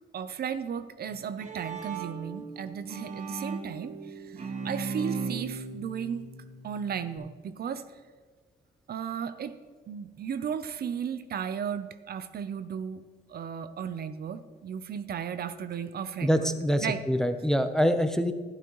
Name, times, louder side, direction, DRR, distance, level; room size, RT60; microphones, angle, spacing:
voice 1, 0.1-6.3 6.6-7.9 8.9-9.6 9.9-13.0 13.3-16.5 16.8-17.0, right 7 dB, 60° right, 11 dB, 0.6 m, -35 dB
Bowed string instrument, 1.1-7.2, right 4 dB, 40° right, 1.2 m, -38 dB
voice 2, 16.2-18.3, equal, 5° left, 8 dB, 0.6 m, -25 dB
12.0 x 12.0 x 3.0 m, 1.5 s
cardioid pair, 125°, 18 cm